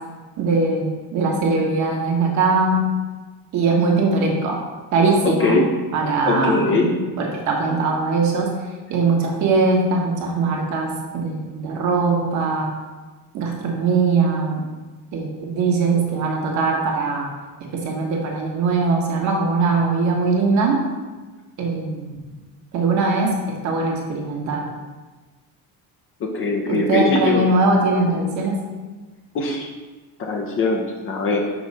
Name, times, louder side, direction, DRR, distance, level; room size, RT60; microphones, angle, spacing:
voice 1, 0.4-2.9 3.5-4.6 4.9-5.7 5.9-8.5 8.9-12.7 13.3-14.7 15.1-17.3 17.7-20.8 21.6-22.2 22.7-24.7 26.7-28.6, right 3 dB, 55° right, 0 dB, 1.2 m, -21 dB
voice 2, 5.2-5.7 6.3-6.9 26.2-27.4 29.3-29.7 30.2-31.5, left 3 dB, 35° left, 0 dB, 0.6 m, -21 dB
6.0 x 3.1 x 5.3 m, 1.3 s
cardioid pair, 170°, 35 cm